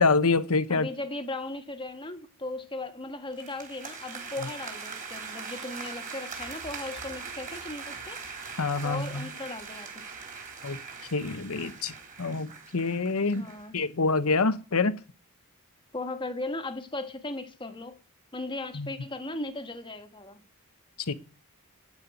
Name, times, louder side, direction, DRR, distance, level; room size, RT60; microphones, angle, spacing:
voice 1, 0.0-0.9 8.6-9.3 10.6-10.8 11.1-11.9 12.2-15.0 18.7-18.9 21.0-21.1, left 4 dB, 75° left, 1.0 m, -26 dB
voice 2, 0.7-8.2 8.8-9.9 13.3-13.7 15.9-18.0 18.3-20.4, left 2 dB, 20° left, 1.5 m, -37 dB
sound 1, 3.3-13.7, right 5 dB, 40° right, 3.9 m, -41 dB
15.5 x 5.6 x 9.2 m
head